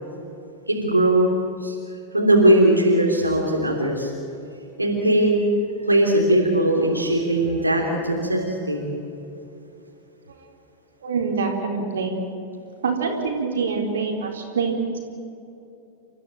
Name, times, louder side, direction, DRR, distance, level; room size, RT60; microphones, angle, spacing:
voice 1, 0.7-1.3 1.6-1.7 2.1-4.1 4.8-5.4 5.9-8.8, right 1 dB, 85° right, -2 dB, 3.3 m, -19 dB
voice 2, 11.0-12.2 12.8-15.0, right 5 dB, 65° right, 2 dB, 3.9 m, -25 dB
30.0 x 14.5 x 9.0 m, 2.9 s
figure-of-eight pair, 90°, 0 cm